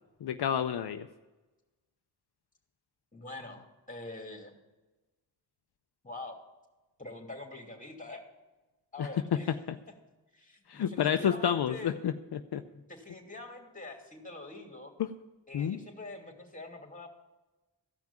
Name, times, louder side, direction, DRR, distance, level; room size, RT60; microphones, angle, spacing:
voice 1, 0.2-1.1 9.0-9.1 9.5-9.8 10.7-12.6 15.0-15.1 15.5-15.8, left 9 dB, 65° left, 8 dB, 0.6 m, -30 dB
voice 2, 3.1-4.5 6.0-6.4 7.0-8.2 8.9-9.5 10.3-11.9 12.7-14.9 15.5-17.1, left 2 dB, 20° left, 3 dB, 2.8 m, -45 dB
14.5 x 5.9 x 8.7 m, 1.1 s
cardioid pair, 50°, 43 cm